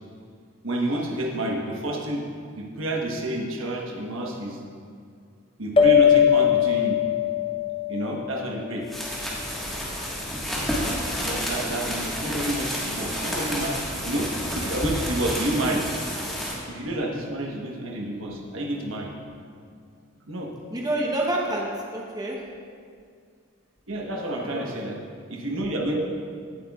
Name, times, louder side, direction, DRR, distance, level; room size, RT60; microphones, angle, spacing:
voice 1, 0.6-2.2 2.6-4.6 5.6-7.0 7.9-8.8 11.2-13.8 14.0-15.9 16.7-19.1 20.3-20.5 23.9-25.0 25.3-26.0, right 1 dB, 70° right, -1 dB, 1.2 m, -29 dB
sound 1, 5.8-8.7, left 8 dB, 25° left, 0.8 m, -20 dB
sound 2, 8.8-16.5, equal, ahead, 1.5 m, -30 dB
voice 2, 20.7-22.4 24.3-24.7, right 1 dB, 20° right, -2 dB, 0.9 m, -28 dB
17.0 x 8.0 x 2.4 m, 2.2 s
head